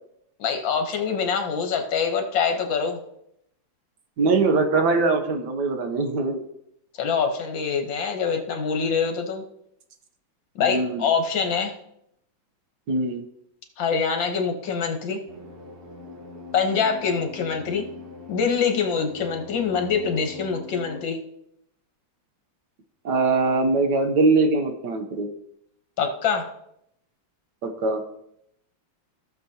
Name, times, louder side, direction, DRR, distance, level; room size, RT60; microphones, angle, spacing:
voice 1, 0.4-3.0 6.9-9.4 10.5-11.7 13.8-15.2 16.5-17.8 18.3-21.2 26.0-26.5, left 6 dB, 75° left, 5 dB, 1.9 m, -24 dB
voice 2, 4.2-6.4 10.6-11.0 12.9-13.2 23.0-25.3 27.6-28.0, right 3 dB, 65° right, 6 dB, 1.5 m, -22 dB
sound 1, 15.3-21.0, left 4 dB, 30° right, 1.5 m, -42 dB
16.0 x 6.7 x 2.8 m, 0.77 s
omnidirectional pair, 2.1 m